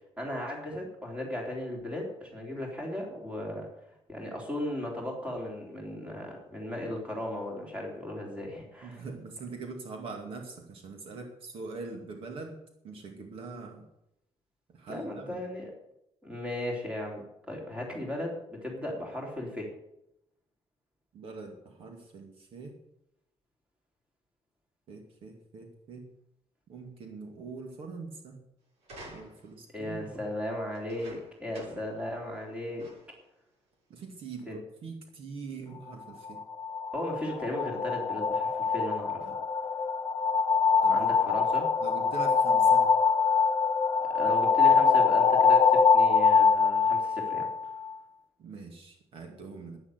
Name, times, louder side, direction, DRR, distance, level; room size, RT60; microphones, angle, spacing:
voice 1, 0.2-3.7 4.1-9.0 14.9-15.7 16.2-19.7 29.7-32.9 34.5-34.6 36.9-39.3 40.9-41.7 44.1-47.5, left 1 dB, 10° right, 0 dB, 3.8 m, -36 dB
voice 2, 8.8-12.6 12.8-13.8 14.7-15.4 21.1-22.8 24.9-26.1 26.7-28.4 29.1-30.3 33.9-36.4 39.2-39.3 40.8-41.4 41.8-42.9 48.4-49.8, right 4 dB, 60° right, 4 dB, 2.2 m, -43 dB
sound 1, 28.8-29.6 30.7-32.0 32.3-32.4 32.8-33.2 34.0-34.1, right 1 dB, 85° right, 7.4 m, -50 dB
sound 2, 36.3-47.9, left 5 dB, 40° left, 1.0 m, -24 dB
11.0 x 10.5 x 8.1 m, 0.82 s
cardioid pair, 175°, 11 cm